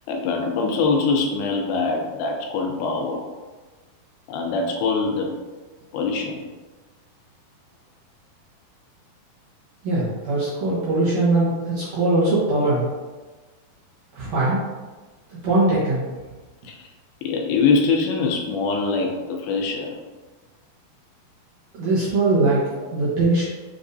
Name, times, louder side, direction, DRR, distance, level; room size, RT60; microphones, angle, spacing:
voice 1, 0.1-3.2 4.3-5.4 5.9-6.4 16.6-16.8 17.2-19.9, left 4 dB, 80° left, 1 dB, 2.2 m, -23 dB
voice 2, 9.8-12.9 14.1-14.6 15.3-16.1 21.7-23.4, right 2 dB, 75° right, -9 dB, 1.7 m, -21 dB
6.9 x 2.5 x 2.6 m, 1.3 s
omnidirectional pair, 4.6 m